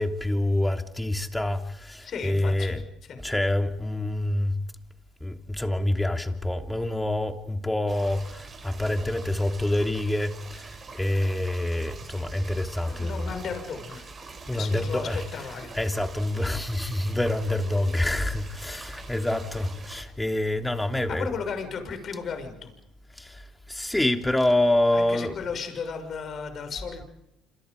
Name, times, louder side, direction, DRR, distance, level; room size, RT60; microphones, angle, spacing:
voice 1, 0.0-2.8 3.2-4.6 5.2-13.4 14.5-15.2 15.7-21.3 23.1-25.3, left 1 dB, 10° left, 3.1 m, -27 dB
voice 2, 2.0-2.8 3.1-3.2 12.8-14.0 14.5-15.7 18.7-18.9 21.1-22.7 24.9-27.1, left 5 dB, 50° left, 6.2 m, -35 dB
sound 1, 7.9-20.0, right 4 dB, 35° right, 7.8 m, -44 dB
28.0 x 27.0 x 5.2 m
supercardioid pair, 70°, 0 cm